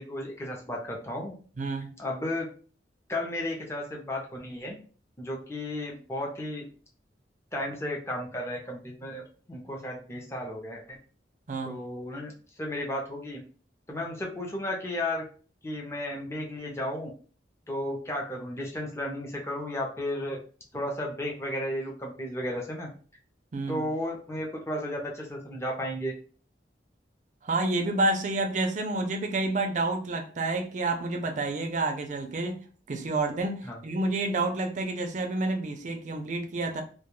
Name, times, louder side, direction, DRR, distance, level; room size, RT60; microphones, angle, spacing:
voice 1, 0.0-1.4 2.0-2.5 3.1-4.8 5.2-6.6 7.5-11.0 11.6-13.4 13.9-15.2 15.6-17.1 17.7-20.4 20.7-22.9 23.7-26.1 33.6-33.8, left 1 dB, 15° left, 0.5 m, -34 dB
voice 2, 1.6-2.0 11.5-11.8 23.5-23.9 27.4-32.6 32.9-36.8, right 2 dB, 45° right, 0.4 m, -29 dB
2.2 x 2.2 x 3.0 m
head